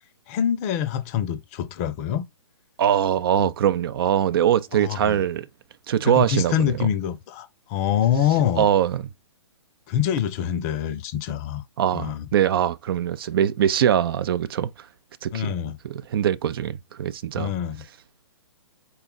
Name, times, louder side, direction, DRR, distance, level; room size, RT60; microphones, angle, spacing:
voice 1, 0.3-2.2 3.4-3.5 4.7-5.2 6.0-8.7 9.9-11.6 11.9-12.3 15.3-15.8 17.4-17.8, left 9 dB, 30° left, 0.6 m, -25 dB
voice 2, 2.8-5.5 5.9-6.9 8.6-9.1 11.8-14.7 15.2-15.5 15.8-17.5, right 10 dB, 50° right, 0.4 m, -22 dB
4.1 x 2.3 x 3.9 m
hypercardioid pair, 130°, 16 cm